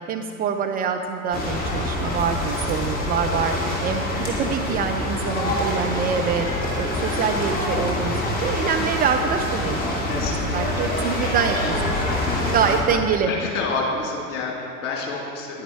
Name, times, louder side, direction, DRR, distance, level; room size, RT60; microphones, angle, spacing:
voice 1, 0.1-3.5 3.8-6.5 6.8-12.0 12.5-13.3, right 6 dB, 20° right, 5 dB, 0.4 m, -25 dB
sound 1, 1.3-12.8, left 1 dB, 20° left, 2.6 m, -25 dB
voice 2, 10.0-10.8 12.3-13.0 13.3-15.6, left 3 dB, 60° left, -2 dB, 2.5 m, -29 dB
10.5 x 9.9 x 4.5 m, 2.4 s
figure-of-eight pair, 75°, 42 cm